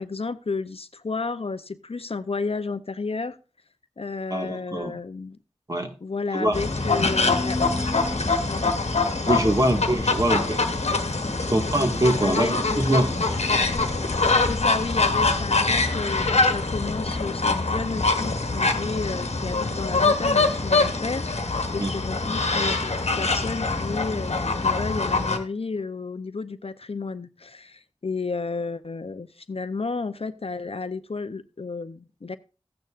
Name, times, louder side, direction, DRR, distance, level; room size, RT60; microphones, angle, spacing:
voice 1, 0.0-3.4 4.0-5.4 6.0-7.6 8.5-8.8 11.3-11.4 12.2-13.0 14.3-32.4, left 4 dB, 60° left, 12 dB, 0.6 m, -32 dB
voice 2, 4.3-5.0 5.7-5.9 6.3-6.6 9.3-10.6 11.5-13.1 21.8-21.9, right 1 dB, 30° right, 4 dB, 1.8 m, -23 dB
sound 1, 6.5-25.4, left 3 dB, 80° left, 1.2 m, -24 dB
14.5 x 9.3 x 2.5 m, 0.34 s
wide cardioid pair, 45°, 11 cm